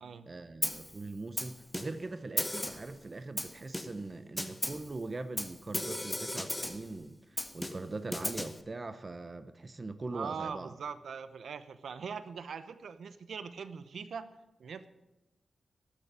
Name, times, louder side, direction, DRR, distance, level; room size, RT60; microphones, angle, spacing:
voice 1, 0.3-10.8, right 3 dB, 30° right, 10 dB, 0.6 m, -41 dB
Snare drum, 0.6-0.9 1.4-2.1 2.4-2.9 3.4-4.1 4.4-4.9 5.4-6.9 7.4-8.6, left 1 dB, 10° left, 0.8 m, -36 dB
voice 2, 10.1-14.3 14.6-14.9, right 6 dB, 70° right, 12 dB, 0.8 m, -41 dB
12.0 x 6.9 x 9.0 m, 0.98 s
wide cardioid pair, 155°, 0 cm